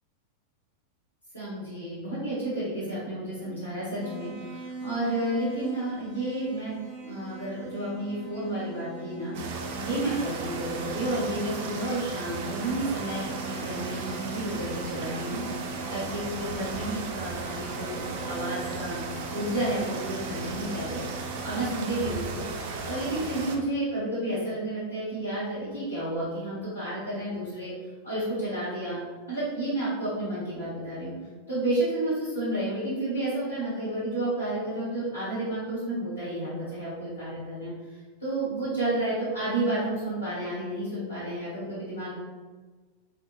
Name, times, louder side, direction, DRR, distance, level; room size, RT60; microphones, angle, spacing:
voice 1, 1.3-6.7 7.0-19.0 19.3-22.4 22.8-27.7 28.0-29.0 29.3-31.1 31.5-37.7 38.2-42.1, right 1 dB, 70° left, -14 dB, 1.1 m, -31 dB
sound 1, 4.0-21.6, right 4 dB, 50° left, 1.1 m, -42 dB
sound 2, 9.3-23.6, right 3 dB, 50° right, 0.4 m, -36 dB
2.5 x 2.3 x 2.7 m, 1.4 s
figure-of-eight pair, 90°, 0 cm